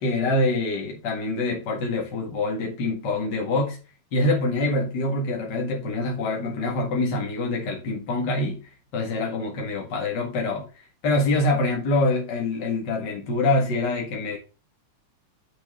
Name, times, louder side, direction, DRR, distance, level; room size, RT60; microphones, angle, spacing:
voice 1, 0.0-3.8 4.1-8.6 8.9-14.4, left 2 dB, 55° left, 2.3 m, -25 dB
7.4 x 6.1 x 3.6 m
omnidirectional pair, 2.3 m